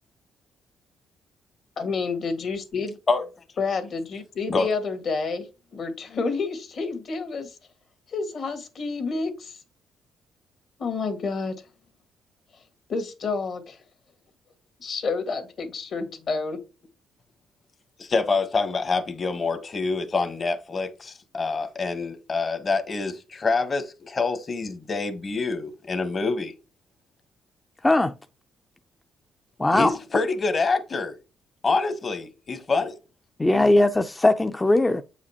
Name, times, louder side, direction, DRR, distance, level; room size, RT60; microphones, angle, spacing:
voice 1, 1.8-2.9 3.6-7.5 8.1-9.6 10.8-11.6 12.9-13.8 14.8-16.6, left 4 dB, 55° left, 1.6 m, -29 dB
voice 2, 18.0-26.5 29.7-31.2 31.6-32.9, left 4 dB, 35° left, 1.1 m, -26 dB
voice 3, 27.8-28.1 29.6-29.9 33.4-35.0, left 2 dB, 15° left, 0.4 m, -19 dB
7.8 x 4.9 x 2.8 m
cardioid pair, 90°, 0 cm